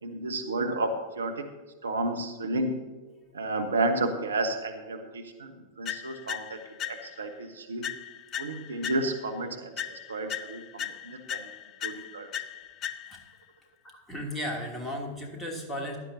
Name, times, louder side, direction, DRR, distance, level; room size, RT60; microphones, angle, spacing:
voice 1, 0.0-1.5 1.8-2.8 3.3-7.9 8.4-11.5 11.8-12.3, right 2 dB, 70° right, 6 dB, 1.0 m, -32 dB
sound 1, 5.8-7.3 7.8-9.4 9.8-13.4, left 9 dB, 35° left, 0.4 m, -38 dB
voice 2, 13.8-16.0, equal, 10° left, -1 dB, 2.8 m, -35 dB
15.5 x 11.5 x 2.8 m, 1.3 s
figure-of-eight pair, 90°, 0 cm